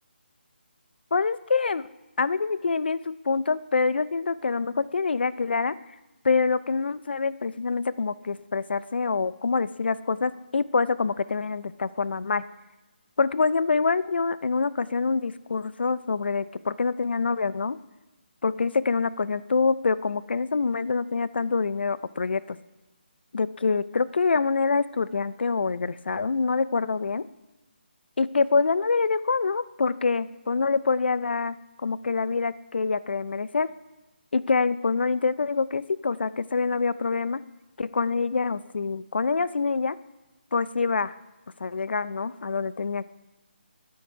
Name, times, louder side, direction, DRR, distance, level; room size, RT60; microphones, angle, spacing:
voice 1, 1.1-1.8 2.2-5.7 6.2-12.4 13.2-17.8 18.4-22.6 23.3-27.2 28.2-31.6 31.8-33.7 34.3-37.4 37.8-40.0 40.5-41.1 41.6-43.0, left 4 dB, 65° left, 17 dB, 0.4 m, -25 dB
9.3 x 9.3 x 5.5 m, 1.0 s
hypercardioid pair, 170°, 6 cm